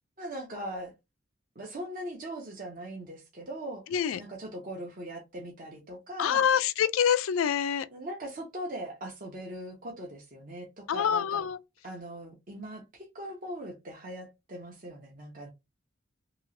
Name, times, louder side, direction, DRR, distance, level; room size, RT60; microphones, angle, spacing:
voice 1, 0.2-0.9 1.6-3.8 4.2-6.4 7.9-11.5 11.8-15.5, right 1 dB, 40° right, 0.7 m, -40 dB
voice 2, 6.2-7.9 10.9-11.6, left 8 dB, 90° left, 0.4 m, -26 dB
3.0 x 2.8 x 2.6 m
head